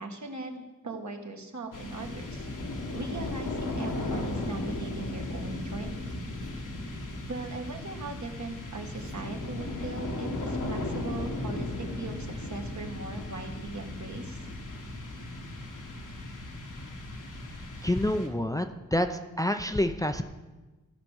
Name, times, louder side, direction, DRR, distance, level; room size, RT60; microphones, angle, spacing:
voice 1, 0.0-2.5 2.9-6.1 6.6-6.7 7.3-14.5, right 3 dB, 60° right, 2 dB, 1.7 m, -39 dB
sound 1, 1.7-18.7, left 2 dB, 70° left, 1.6 m, -36 dB
voice 2, 17.8-18.7 18.9-20.2, left 1 dB, 10° left, 6 dB, 0.6 m, -27 dB
13.5 x 5.2 x 6.4 m, 1.2 s
cardioid pair, 50°, 33 cm